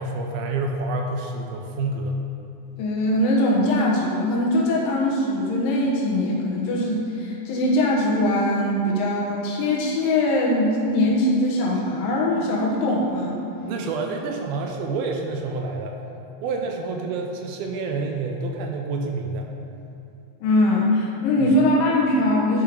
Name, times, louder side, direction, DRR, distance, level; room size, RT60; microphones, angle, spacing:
voice 1, 0.0-2.2 13.6-16.0 16.4-19.5 21.4-21.5, right 3 dB, 80° right, 2 dB, 2.3 m, -28 dB
voice 2, 2.8-13.4 20.4-22.6, left 1 dB, 65° left, -3 dB, 2.8 m, -21 dB
10.5 x 5.5 x 5.0 m, 2.7 s
omnidirectional pair, 4.7 m